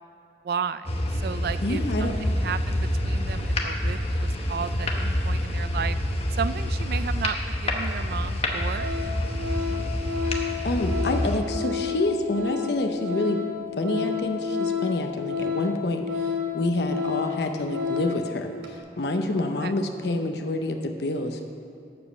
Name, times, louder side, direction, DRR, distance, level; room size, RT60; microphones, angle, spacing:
voice 1, 0.4-6.0 6.3-8.9 16.9-17.1 19.6-19.7, right 6 dB, 55° right, 14 dB, 0.3 m, -33 dB
sound 1, 0.8-11.4, left 1 dB, 35° left, 0.9 m, -27 dB
voice 2, 1.6-2.1 10.6-13.4 13.8-21.4, left 1 dB, 70° left, 5 dB, 0.7 m, -27 dB
Organ, 7.7-7.8 8.3-8.4 8.7-18.3 18.6-18.8, left 6 dB, 75° right, 1.4 m, -31 dB
12.0 x 5.2 x 7.1 m, 2.5 s
head